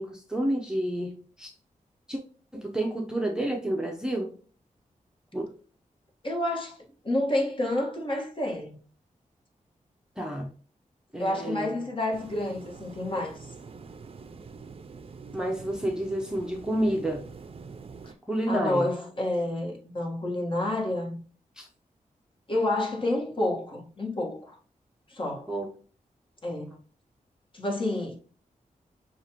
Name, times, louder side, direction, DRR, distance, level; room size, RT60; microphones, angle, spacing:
voice 1, 0.0-1.5 2.1-2.2 2.5-4.3 5.3-5.5 10.2-10.5 11.1-11.7 15.3-17.3 18.3-18.9 21.6-21.7 25.3-25.7, right 1 dB, 5° right, 0.7 m, -30 dB
voice 2, 6.2-6.8 7.0-8.8 11.2-13.4 18.0-18.1 18.5-21.2 22.5-24.6 25.1-25.5 26.4-26.7 27.5-28.2, left 1 dB, 40° left, 1.4 m, -29 dB
sound 1, 12.1-18.1, right 5 dB, 45° right, 0.5 m, -45 dB
6.4 x 2.5 x 2.9 m
wide cardioid pair, 85°, 14 cm